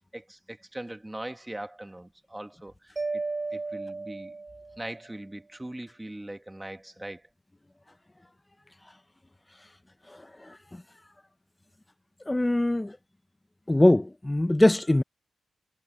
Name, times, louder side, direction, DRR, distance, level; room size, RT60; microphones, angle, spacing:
voice 1, 0.1-3.2 3.5-4.4 4.8-7.2, right 1 dB, 10° right, 1.7 m, -40 dB
Mallet percussion, 3.0-5.0, right 3 dB, 25° right, 1.3 m, -34 dB
voice 2, 12.3-12.9 13.7-15.0, left 1 dB, 15° left, 1.1 m, -21 dB
cardioid pair, 90°, 0 cm